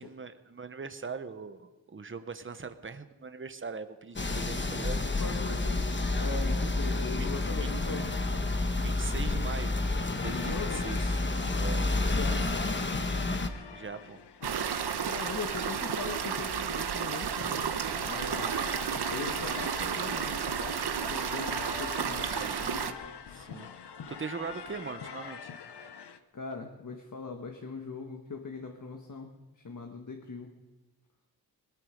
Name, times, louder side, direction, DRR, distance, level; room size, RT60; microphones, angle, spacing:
voice 1, 0.0-5.0 7.1-7.3 7.6-7.7 8.8-9.8 10.1-11.1 11.6-11.8 13.7-14.2 22.3-22.7 23.3-25.5, right 5 dB, 30° right, 9 dB, 1.0 m, -41 dB
sound 1, 4.2-13.5, left 2 dB, 30° left, 1.2 m, -30 dB
voice 2, 5.2-8.2 10.3-10.8 12.1-13.0 15.0-17.7 18.1-18.6 19.1-20.8 21.1-22.9 26.3-30.5, left 4 dB, 50° left, 3 dB, 1.5 m, -40 dB
sound 2, 10.2-26.2, left 6 dB, 90° left, 0.9 m, -44 dB
sound 3, 14.4-22.9, right 7 dB, 80° right, 0.9 m, -32 dB
20.0 x 13.0 x 5.2 m, 1.2 s
wide cardioid pair, 95°, 39 cm